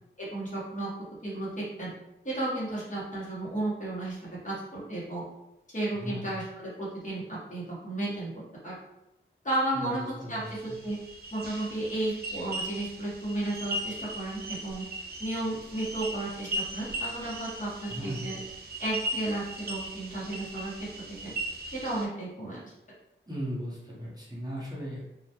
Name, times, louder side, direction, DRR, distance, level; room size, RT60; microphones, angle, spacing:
voice 1, 0.2-0.9 1.2-1.9 2.2-5.2 5.7-8.3 8.6-8.7 9.4-10.4 10.8-11.0 11.3-14.8 15.2-18.4 18.8-20.7 21.2-21.3 21.8-22.7, right 1 dB, 40° left, -7 dB, 0.9 m, -33 dB
voice 2, 5.9-6.3 9.7-10.5 17.9-18.3 23.3-25.0, equal, 20° right, -7 dB, 0.7 m, -37 dB
sound 1, 10.4-22.0, right 1 dB, 50° right, 0.4 m, -38 dB
2.2 x 2.1 x 2.8 m, 0.91 s
wide cardioid pair, 75°, 20 cm